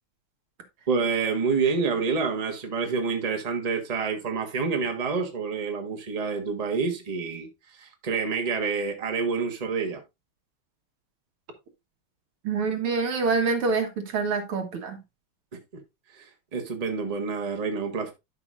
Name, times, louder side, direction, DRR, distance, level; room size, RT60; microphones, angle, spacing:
voice 1, 0.9-10.0 16.1-18.1, right 5 dB, 20° right, 1.1 m, -28 dB
voice 2, 12.4-15.0, right 4 dB, 80° right, 2.5 m, -26 dB
11.5 x 5.5 x 2.5 m
omnidirectional pair, 2.4 m